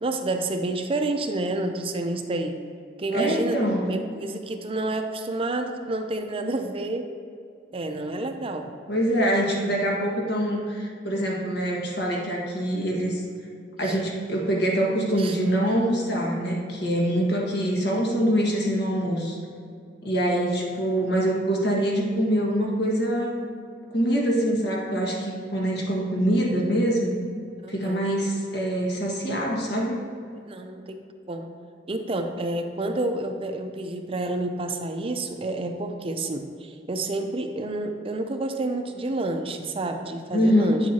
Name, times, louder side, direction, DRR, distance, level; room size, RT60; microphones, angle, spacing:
voice 1, 0.0-2.6 3.0-3.6 3.9-7.1 7.7-8.7 13.8-14.0 15.2-15.4 20.3-20.4 27.6-28.0 29.3-29.5 30.4-31.0 31.3-31.5 31.9-40.8, right 2 dB, 30° right, 6 dB, 0.5 m, -29 dB
voice 2, 3.1-3.9 8.9-13.2 13.8-19.4 20.0-23.4 23.9-27.1 27.7-30.0 40.3-40.8, equal, 70° left, -2 dB, 1.6 m, -24 dB
9.5 x 7.5 x 2.8 m, 2.4 s
head